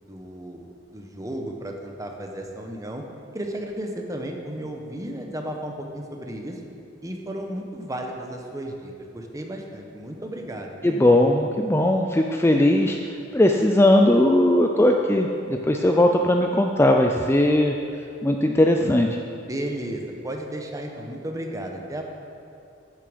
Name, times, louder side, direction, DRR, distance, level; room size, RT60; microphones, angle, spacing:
voice 1, 0.0-3.0 3.3-6.6 7.0-11.0 19.5-22.1, right 1 dB, 20° right, 2 dB, 1.1 m, -34 dB
voice 2, 10.8-13.0 13.3-17.7 18.2-19.2, left 1 dB, 15° left, 3 dB, 0.4 m, -19 dB
13.5 x 7.1 x 5.2 m, 2.6 s
head